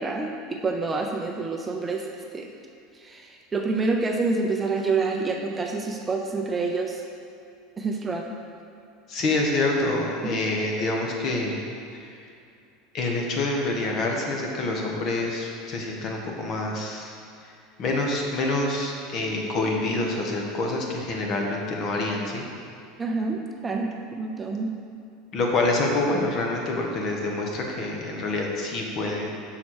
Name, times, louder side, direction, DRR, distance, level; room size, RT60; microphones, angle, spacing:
voice 1, 0.0-2.1 2.3-2.5 3.0-7.0 7.8-8.3 10.2-10.4 23.0-24.8, right 3 dB, 15° right, 2 dB, 0.5 m, -27 dB
voice 2, 9.1-11.6 11.9-12.1 12.9-17.1 17.4-17.5 17.8-22.4 25.3-29.3, left 2 dB, 40° left, 0 dB, 1.2 m, -27 dB
5.8 x 4.2 x 6.3 m, 2.6 s
supercardioid pair, 130°, 0 cm